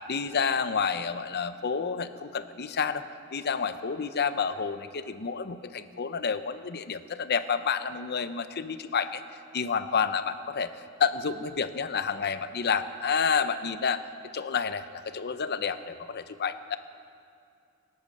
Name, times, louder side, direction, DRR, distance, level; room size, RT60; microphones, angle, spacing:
voice 1, 0.1-3.0 3.3-9.2 9.5-10.7 11.0-14.0 14.3-16.8, left 6 dB, 50° left, 11 dB, 0.7 m, -29 dB
24.5 x 8.6 x 6.7 m, 2.4 s
head